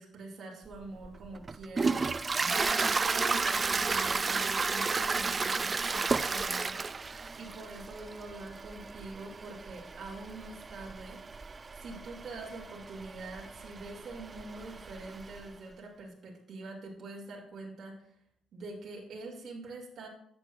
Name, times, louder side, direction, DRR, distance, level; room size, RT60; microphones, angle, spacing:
voice 1, 0.0-11.2 11.7-18.1 18.5-20.1, right 2 dB, 55° right, -2 dB, 2.4 m, -45 dB
Toilet flush, 0.7-15.5, right 4 dB, 30° right, 0.4 m, -33 dB
11.0 x 8.4 x 2.5 m, 0.71 s
cardioid pair, 90°, 0 cm